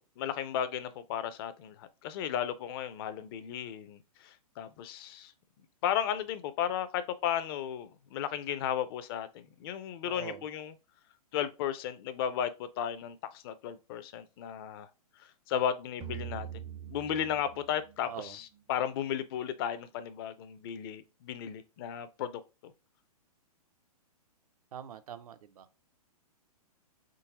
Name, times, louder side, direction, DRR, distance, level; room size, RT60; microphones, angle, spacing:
voice 1, 0.0-5.3 5.8-10.7 11.3-14.9 15.2-16.5 16.9-22.7, left 9 dB, 40° left, 0.5 m, -35 dB
voice 2, 10.0-10.4 18.0-18.4 24.7-25.7, right 9 dB, 70° right, 0.6 m, -43 dB
sound 1, 16.0-19.3, right 10 dB, 20° right, 0.4 m, -44 dB
4.0 x 3.8 x 2.8 m
hypercardioid pair, 135°, 20 cm